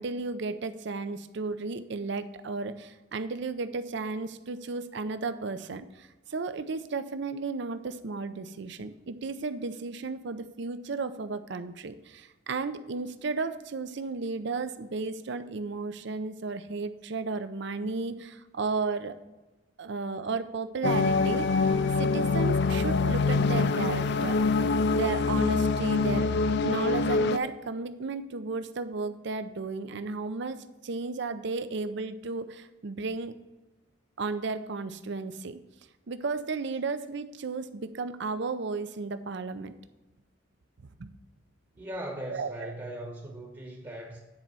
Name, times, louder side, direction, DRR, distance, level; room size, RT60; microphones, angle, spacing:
voice 1, 0.0-19.2 19.8-21.5 22.0-24.4 24.9-26.3 26.6-33.3 34.2-35.6 36.1-39.8 41.0-41.1 42.3-42.7, right 4 dB, 60° right, 11 dB, 0.5 m, -34 dB
sound 1, 20.8-27.4, left 3 dB, 55° left, 0.4 m, -25 dB
voice 2, 41.8-44.2, right 1 dB, 20° right, 0 dB, 1.0 m, -39 dB
9.8 x 4.4 x 5.4 m, 1.1 s
head